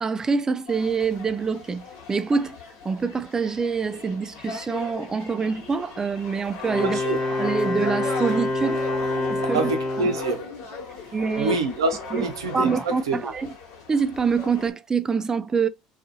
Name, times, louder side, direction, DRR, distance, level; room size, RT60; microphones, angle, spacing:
voice 1, 0.0-2.6 2.8-7.0 7.3-8.8 9.3-9.6 10.0-10.1 11.1-11.6 12.1-12.2 12.5-13.5 13.9-15.7, right 5 dB, 20° right, 0.3 m, -25 dB
sound 1, 0.7-14.7, left 4 dB, 70° left, 1.2 m, -38 dB
Wind instrument woodwind instrument, 6.6-10.4, left 2 dB, 30° left, 1.1 m, -26 dB
voice 2, 6.8-7.2 9.5-10.5 11.4-13.3, right 3 dB, 85° right, 0.6 m, -26 dB
2.6 x 2.4 x 2.5 m
hypercardioid pair, 70°, 3 cm